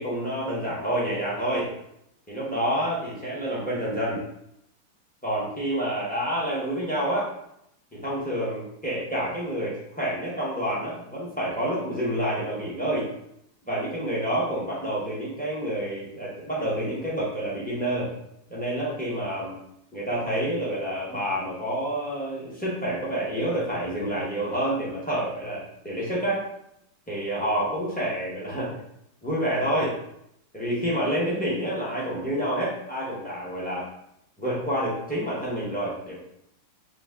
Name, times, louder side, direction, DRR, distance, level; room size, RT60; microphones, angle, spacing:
voice 1, 0.0-1.7 2.3-4.2 5.2-7.3 8.0-13.0 13.6-18.1 18.5-19.5 19.9-26.4 27.1-28.8 29.2-29.9 30.5-33.9 34.4-36.2, right 1 dB, 10° left, -7 dB, 0.4 m, -28 dB
4.0 x 2.9 x 3.6 m, 0.76 s
omnidirectional pair, 2.4 m